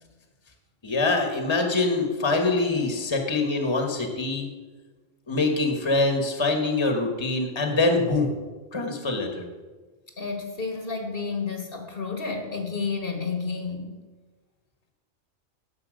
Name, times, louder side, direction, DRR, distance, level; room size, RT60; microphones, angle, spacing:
voice 1, 0.8-4.5 5.3-8.3 8.7-9.5, left 3 dB, 25° left, 4 dB, 1.3 m, -24 dB
voice 2, 10.2-13.9, left 4 dB, 55° left, 4 dB, 1.5 m, -31 dB
10.0 x 7.4 x 6.3 m, 1.3 s
omnidirectional pair, 1.2 m